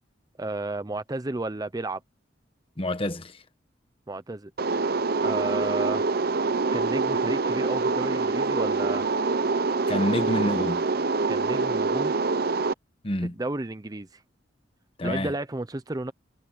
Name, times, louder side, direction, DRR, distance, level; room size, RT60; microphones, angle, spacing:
voice 1, 0.4-2.0 4.1-4.5 5.2-6.1 6.7-9.0 11.3-12.1 13.2-14.2 15.0-16.1, right 2 dB, 20° right, 0.6 m, -32 dB
voice 2, 2.8-3.3 9.9-10.8 13.0-13.3 15.0-15.3, left 1 dB, 30° left, 1.3 m, -27 dB
sound 1, 4.6-12.7, right 3 dB, 55° right, 0.8 m, -25 dB
head